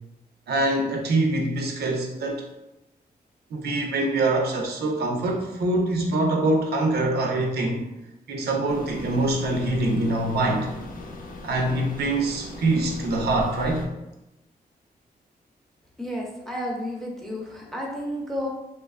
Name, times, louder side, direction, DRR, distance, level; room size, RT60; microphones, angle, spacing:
voice 1, 0.5-2.4 3.5-7.8 8.3-10.7 11.4-13.9, right 2 dB, 80° right, 1 dB, 0.5 m, -24 dB
sound 1, 8.7-13.9, left 2 dB, 55° left, 0.4 m, -38 dB
voice 2, 16.0-18.5, equal, ahead, -2 dB, 0.6 m, -31 dB
2.7 x 2.3 x 2.3 m, 0.94 s
cardioid pair, 100°, 17 cm